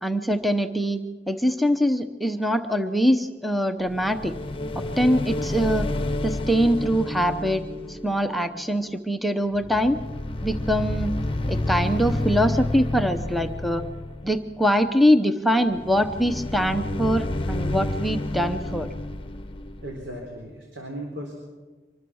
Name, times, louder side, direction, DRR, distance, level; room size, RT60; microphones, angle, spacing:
voice 1, 0.0-1.0 1.3-4.3 4.8-5.9 6.2-7.6 7.9-10.0 10.4-11.1 11.5-13.8 14.2-18.9, equal, ahead, 6 dB, 0.8 m, -23 dB
sound 1, 3.9-9.2 9.5-14.7 15.7-20.5, left 1 dB, 30° left, 1.0 m, -30 dB
voice 2, 19.8-21.3, right 1 dB, 75° right, 0 dB, 4.0 m, -36 dB
25.0 x 19.5 x 6.3 m, 1.3 s
head